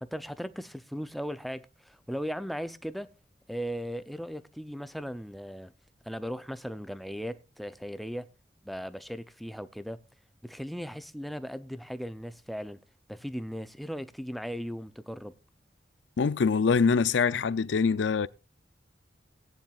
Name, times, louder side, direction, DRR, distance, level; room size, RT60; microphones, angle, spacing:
voice 1, 0.0-3.1 3.5-5.7 6.0-8.3 8.6-10.0 10.4-12.8 13.1-15.4, equal, ahead, 0.5 m, -37 dB
voice 2, 16.2-18.3, left 5 dB, 80° left, 0.5 m, -24 dB
17.5 x 10.5 x 2.4 m
head